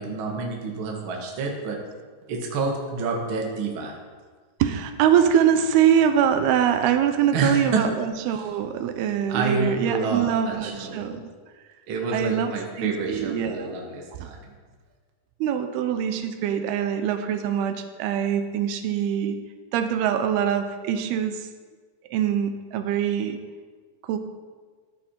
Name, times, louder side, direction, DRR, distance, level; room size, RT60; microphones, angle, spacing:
voice 1, 0.0-1.8 2.3-3.9 7.3-7.9 9.3-11.0 11.9-14.5, right 4 dB, 50° right, 1 dB, 1.7 m, -28 dB
voice 2, 4.6-11.3 12.1-13.7 14.2-14.3 15.4-19.4 19.7-21.5 22.1-23.4 24.1-24.2, right 9 dB, 80° right, 8 dB, 2.7 m, -23 dB
15.0 x 9.9 x 4.4 m, 1.5 s
omnidirectional pair, 4.6 m